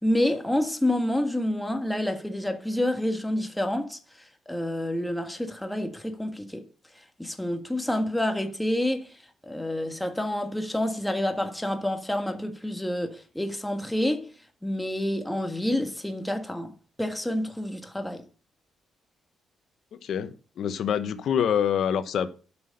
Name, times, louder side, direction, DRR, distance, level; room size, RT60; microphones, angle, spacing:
voice 1, 0.0-4.0 4.5-6.7 7.2-14.3 14.6-16.7 17.0-18.3, left 1 dB, 5° left, 1.5 m, -28 dB
voice 2, 19.9-22.3, left 8 dB, 65° left, 1.1 m, -26 dB
9.1 x 6.2 x 6.5 m
cardioid pair, 90°, 0 cm